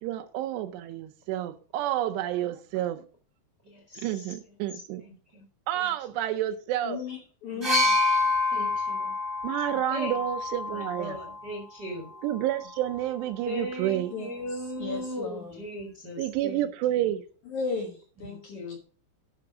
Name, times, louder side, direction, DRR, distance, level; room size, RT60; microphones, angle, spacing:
voice 1, 0.0-3.0 4.0-5.0 5.7-7.0 9.4-11.2 12.2-14.1 16.2-17.2, right 13 dB, 80° right, 2.6 m, -29 dB
voice 2, 3.6-4.3 4.7-5.4 5.7-5.9 7.5-7.9 8.5-9.1 9.9-10.2 10.7-12.1 13.4-17.1 18.2-18.8, equal, 45° right, 1.3 m, -38 dB
voice 3, 6.8-7.9 14.1-15.6 17.5-18.8, left 4 dB, 65° left, 1.9 m, -36 dB
sound 1, 7.6-11.4 12.5-12.6, left 3 dB, 10° right, 1.2 m, -27 dB
12.0 x 5.8 x 4.9 m
omnidirectional pair, 5.4 m